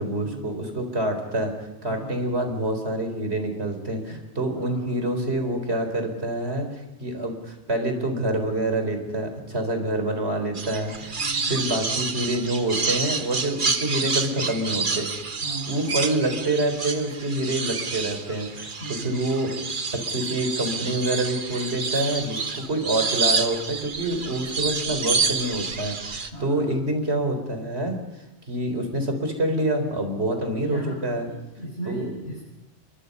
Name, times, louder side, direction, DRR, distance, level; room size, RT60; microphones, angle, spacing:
voice 1, 0.0-1.5 1.8-15.1 15.6-18.7 19.0-19.6 19.9-28.0 28.5-31.3 31.9-32.1, right 1 dB, 70° right, 5 dB, 4.6 m, -27 dB
voice 2, 1.8-2.2 4.5-4.9 11.1-11.5 15.4-16.0 18.8-19.3 26.3-26.7 30.3-31.0 31.2-32.4, right 2 dB, 70° left, -5 dB, 6.8 m, -36 dB
sound 1, 10.6-26.3, right 4 dB, 50° right, 1.4 m, -28 dB
30.0 x 23.5 x 5.5 m, 0.98 s
omnidirectional pair, 1.1 m